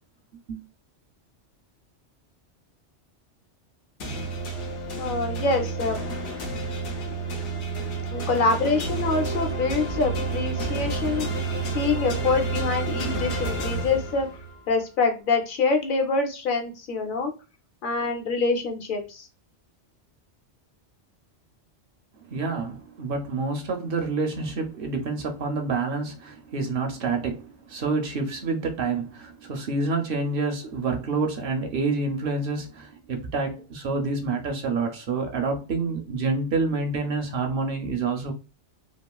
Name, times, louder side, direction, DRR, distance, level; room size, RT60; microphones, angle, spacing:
sound 1, 4.0-14.6, right 3 dB, 80° left, 1.0 m, -30 dB
voice 1, 5.0-6.0 8.1-11.3 11.7-14.3 14.7-17.3 17.8-19.3, left 4 dB, 55° left, 0.7 m, -25 dB
voice 2, 22.3-38.3, right 4 dB, 60° right, 0.7 m, -28 dB
2.9 x 2.4 x 2.2 m
omnidirectional pair, 1.2 m